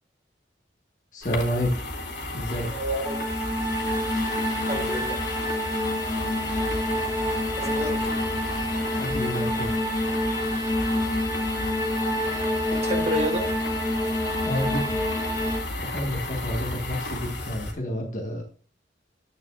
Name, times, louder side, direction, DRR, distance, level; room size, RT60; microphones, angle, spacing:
voice 1, 1.1-1.7 2.3-2.7 8.9-9.7 14.4-14.9 15.8-18.4, equal, 45° left, 1 dB, 1.5 m, -29 dB
sound 1, 1.2-17.7, left 2 dB, 80° left, 2.4 m, -33 dB
voice 2, 2.7-3.2 4.6-5.2 7.6-8.2 12.7-13.4, equal, 35° right, 2 dB, 1.9 m, -29 dB
sound 2, 3.0-15.6, left 1 dB, 20° left, 2.3 m, -27 dB
10.5 x 8.6 x 2.4 m, 0.41 s
head